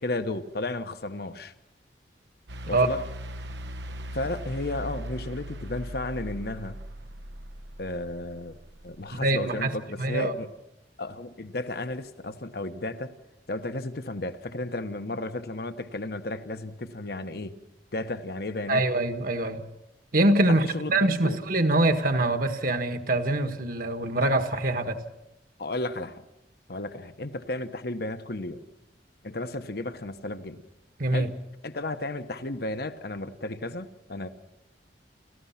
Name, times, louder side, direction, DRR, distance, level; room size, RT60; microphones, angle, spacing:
voice 1, 0.0-1.5 2.7-3.0 4.1-6.8 7.8-8.6 8.8-10.5 11.0-13.1 13.5-17.5 17.9-18.8 20.5-20.9 21.2-21.4 25.6-26.2 26.7-28.7 29.2-30.6 31.1-31.3 31.6-34.3, left 2 dB, 60° left, 1.1 m, -33 dB
sound 1, 2.5-9.6, equal, 85° right, 1.2 m, -39 dB
voice 2, 9.1-9.7 10.0-10.3 18.7-19.6 20.1-25.0 31.0-31.3, right 2 dB, 50° right, 1.6 m, -24 dB
29.5 x 15.0 x 5.9 m
head